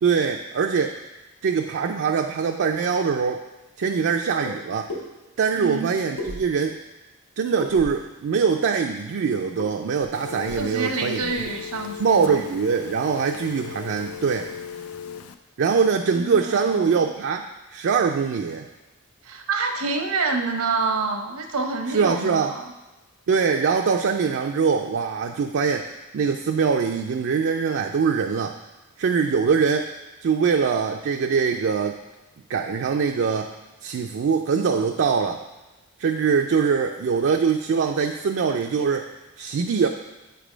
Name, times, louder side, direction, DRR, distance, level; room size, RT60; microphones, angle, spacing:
voice 1, 0.0-1.0 1.4-3.4 3.8-4.9 5.4-6.8 7.4-11.5 12.0-14.5 15.6-17.4 17.7-18.7 21.9-22.5 23.3-28.6 29.0-29.9 30.2-32.0 32.5-33.5 33.8-35.4 36.0-39.1 39.4-39.9, right 5 dB, 60° right, 3 dB, 0.4 m, -23 dB
sound 1, 4.4-4.6 4.9-5.0 6.2-6.8 7.6-8.1 9.6-9.7 10.0-10.1 10.3-10.7 11.1-11.4, left 2 dB, 65° left, 1.6 m, -34 dB
voice 2, 5.6-5.9 10.6-12.5 16.1-17.1 19.2-22.7, right 4 dB, 85° right, 4 dB, 0.8 m, -27 dB
Telephone, 10.1-15.3, left 7 dB, 85° left, 0.4 m, -37 dB
7.8 x 3.4 x 5.0 m, 1.1 s
head